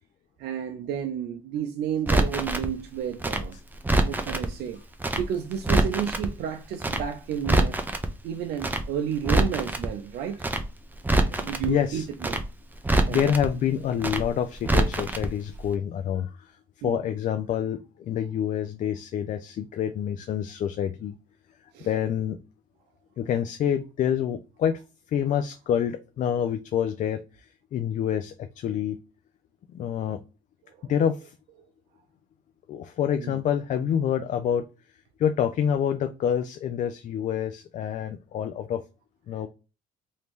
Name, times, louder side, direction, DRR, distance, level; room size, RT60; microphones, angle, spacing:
voice 1, 0.4-3.6 4.0-4.8 5.1-7.8 8.2-10.5 11.3-12.4 13.1-13.3 16.8-17.0 21.7-21.9 30.8-30.9 33.2-33.4, right 8 dB, 75° right, 0.5 m, -31 dB
Crackle, 2.1-2.7 3.2-4.5 5.0-5.2 5.5-6.3 6.8-7.0 7.3-8.1 8.6-8.8 9.1-9.9 10.4-10.6 10.9-11.7 12.2-12.4 12.7-13.5 14.0-14.2 14.5-15.3 15.5-15.6, right 2 dB, 10° right, 0.5 m, -24 dB
voice 2, 11.6-12.1 13.1-16.5 16.8-21.1 21.8-22.4 23.2-24.8 25.1-27.2 27.7-29.0 29.7-30.2 30.9-31.3 32.7-34.6 35.2-38.8 39.3-39.5, left 9 dB, 50° left, 0.4 m, -27 dB
3.0 x 2.7 x 3.5 m
cardioid pair, 110°, 17 cm